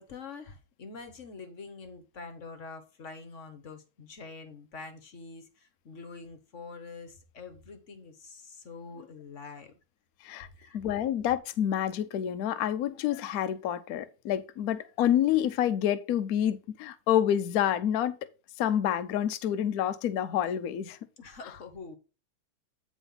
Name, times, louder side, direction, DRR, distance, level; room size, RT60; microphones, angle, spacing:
voice 1, 0.0-9.7 10.5-10.8 21.2-22.0, left 4 dB, 45° left, 1.2 m, -45 dB
voice 2, 10.7-18.2 18.6-21.0, left 10 dB, 70° left, 0.8 m, -28 dB
9.2 x 3.9 x 5.4 m
omnidirectional pair, 2.4 m